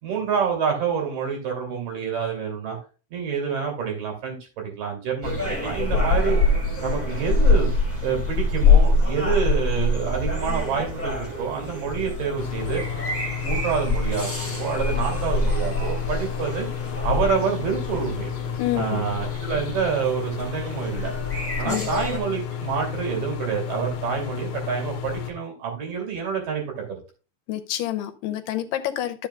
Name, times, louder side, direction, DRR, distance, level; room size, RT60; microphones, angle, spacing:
voice 1, 0.0-2.8 3.1-6.4 6.8-7.7 8.0-12.8 13.4-16.7 17.0-18.3 18.7-21.1 21.6-26.8, right 6 dB, 75° right, 0 dB, 4.3 m, -27 dB
sound 1, 5.2-22.2, left 3 dB, 5° left, 1.9 m, -25 dB
sound 2, 12.4-25.3, left 9 dB, 70° left, 2.2 m, -32 dB
voice 2, 18.6-19.0 21.6-21.9 27.5-29.3, left 13 dB, 85° left, 10 dB, 2.4 m, -28 dB
12.0 x 7.1 x 2.3 m, 0.34 s
omnidirectional pair, 3.9 m